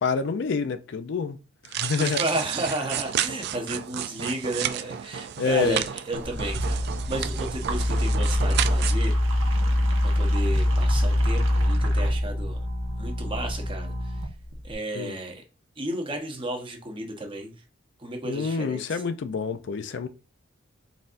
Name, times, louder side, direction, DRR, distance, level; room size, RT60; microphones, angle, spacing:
voice 1, 0.0-1.4 1.7-2.2 5.4-5.8 14.9-15.2 18.2-20.1, left 5 dB, 60° left, 0.4 m, -27 dB
sound 1, 1.6-8.9, right 10 dB, 55° right, 0.3 m, -31 dB
voice 2, 2.0-9.6 10.1-12.6 13.0-14.2 14.6-15.4 15.8-17.5 18.0-19.0, right 1 dB, 25° right, 0.9 m, -33 dB
sound 2, 6.1-14.7, left 1 dB, 85° right, 1.0 m, -24 dB
4.1 x 4.0 x 2.5 m
head